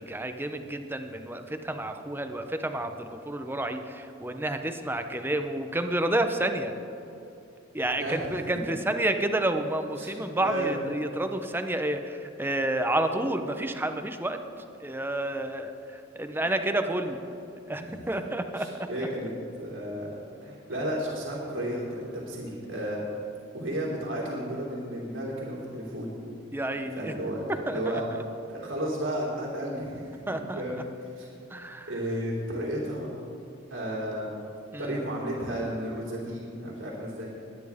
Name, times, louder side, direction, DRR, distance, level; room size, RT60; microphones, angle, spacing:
voice 1, 0.0-6.7 7.7-14.4 14.8-17.2 17.7-18.7 26.5-27.1 27.7-28.0 30.3-30.6 31.5-31.9 34.7-35.0, right 1 dB, 10° right, 7 dB, 0.7 m, -30 dB
voice 2, 8.0-8.4 9.9-10.8 17.8-18.1 18.5-19.3 19.6-20.2 20.4-23.0 23.5-26.2 27.0-28.0 28.5-31.3 31.9-33.2 33.7-34.3 34.8-37.3, right 1 dB, 85° right, -6 dB, 3.1 m, -33 dB
21.5 x 9.9 x 3.6 m, 2.7 s
head